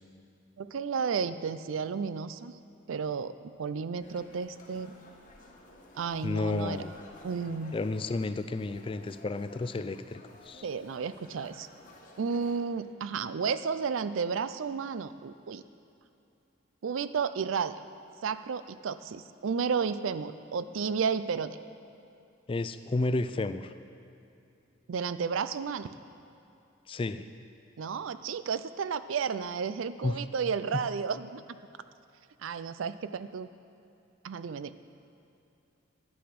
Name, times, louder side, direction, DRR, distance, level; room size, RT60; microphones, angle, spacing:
voice 1, 0.6-2.5 2.9-5.0 5.9-6.8 7.2-7.8 10.6-11.7 12.2-15.6 16.8-17.8 18.2-21.6 24.9-25.9 27.8-31.6 32.4-33.5 34.2-34.7, right 6 dB, 90° right, 13 dB, 0.4 m, -32 dB
sound 1, 4.0-12.6, left 1 dB, 45° left, 1.3 m, -53 dB
voice 2, 6.2-6.9 7.7-10.7 22.5-23.7 26.9-27.3 30.0-30.2 30.8-30.9, left 2 dB, 25° left, 11 dB, 0.4 m, -32 dB
11.5 x 7.9 x 6.0 m, 2.7 s
head